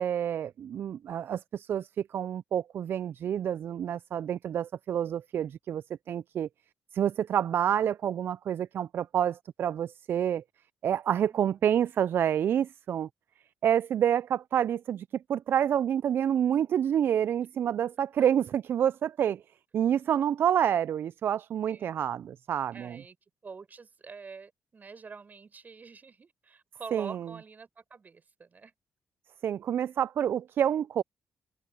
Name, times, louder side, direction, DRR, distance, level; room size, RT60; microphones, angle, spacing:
voice 1, 0.0-6.5 6.9-10.4 10.8-13.1 13.6-19.4 19.7-23.0 26.9-27.3 29.4-31.0, right 9 dB, 60° right, 0.5 m, -28 dB
voice 2, 21.6-22.0 22.7-23.2 23.4-28.7, right 5 dB, 45° right, 6.6 m, -46 dB
open air
hypercardioid pair, 45°, 4 cm